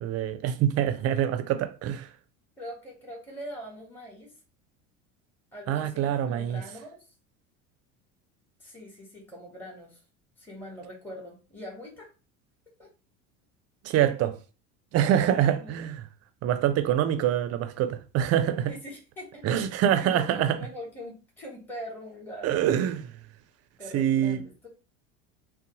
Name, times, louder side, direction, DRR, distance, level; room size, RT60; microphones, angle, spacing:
voice 1, 0.0-2.1 5.7-6.6 13.8-14.4 14.9-16.0 16.4-18.7 19.4-20.6 22.4-23.1 23.9-24.4, right 10 dB, 40° right, 0.5 m, -25 dB
voice 2, 2.6-4.3 5.5-7.0 8.6-10.0 10.4-12.1 12.8-12.9 15.5-15.8 18.7-19.4 19.9-22.9 23.8-24.7, equal, 5° left, 1.0 m, -42 dB
2.6 x 2.1 x 2.9 m
hypercardioid pair, 75°, 39 cm